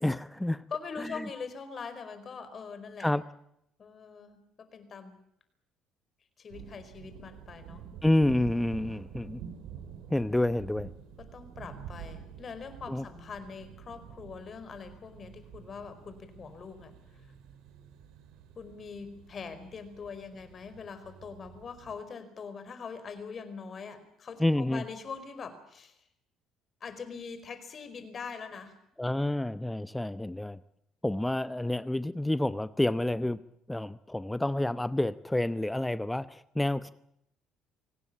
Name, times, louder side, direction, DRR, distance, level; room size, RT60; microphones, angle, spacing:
voice 1, 0.0-0.6 1.0-1.3 3.0-3.2 8.0-9.4 10.1-10.9 12.9-13.0 24.4-24.8 29.0-30.6 31.0-33.4 33.7-36.9, left 1 dB, 10° left, 15 dB, 0.9 m, -29 dB
voice 2, 0.7-3.1 3.8-5.2 6.4-7.8 10.6-10.7 11.2-16.9 18.5-26.0 26.8-28.8, left 5 dB, 45° left, 11 dB, 4.8 m, -43 dB
sound 1, 6.5-22.0, right 8 dB, 75° right, 3.3 m, -48 dB
25.0 x 18.0 x 8.7 m, 0.77 s
hypercardioid pair, 60°, 0 cm